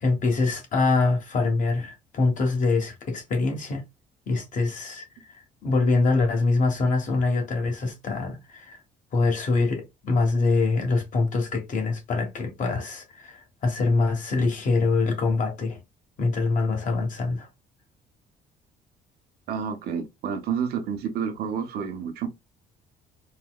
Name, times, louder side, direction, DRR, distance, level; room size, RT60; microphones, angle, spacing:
voice 1, 0.0-3.8 4.3-8.8 9.1-15.8 16.2-17.5, left 3 dB, 50° left, 1.3 m, -24 dB
voice 2, 19.5-22.3, right 7 dB, 70° right, 0.9 m, -29 dB
4.0 x 2.2 x 2.3 m
cardioid pair, 110°, 17 cm